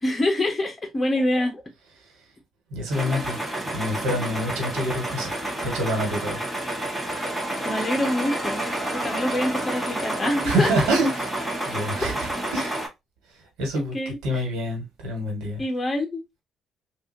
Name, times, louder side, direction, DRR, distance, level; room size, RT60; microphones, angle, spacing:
voice 1, 0.0-1.6 7.6-8.6 8.9-10.7 13.7-14.4 15.6-16.4, left 1 dB, 25° left, 1.2 m, -26 dB
voice 2, 2.7-3.4 3.7-6.5 10.4-11.3 11.6-12.8 13.6-15.6, equal, 90° right, 1.5 m, -27 dB
sound 1, 2.9-12.9, right 1 dB, 10° right, 1.4 m, -29 dB
3.4 x 2.6 x 2.6 m
cardioid pair, 90°, 0 cm